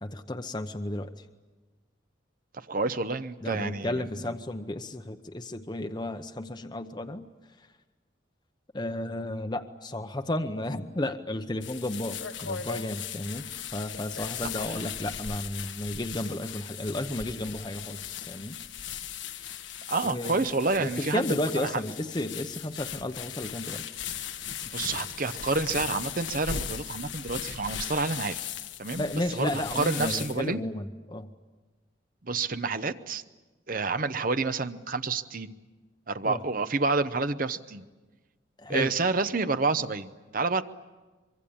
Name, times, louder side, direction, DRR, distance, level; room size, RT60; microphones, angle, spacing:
voice 1, 0.0-1.1 3.4-7.3 8.7-13.4 13.7-18.5 20.0-20.4 20.8-23.8 29.0-31.3 36.2-36.4 38.6-38.9, left 1 dB, 20° left, 6 dB, 0.8 m, -33 dB
voice 2, 2.5-4.0 14.4-14.8 19.9-21.7 24.7-28.4 28.8-29.1 29.3-30.6 32.2-33.2 33.7-35.5 36.1-37.8 38.7-40.6, right 3 dB, 45° right, 11 dB, 0.8 m, -29 dB
sound 1, 11.6-30.5, left 8 dB, 75° left, 1.4 m, -38 dB
24.5 x 23.5 x 8.7 m, 1.2 s
head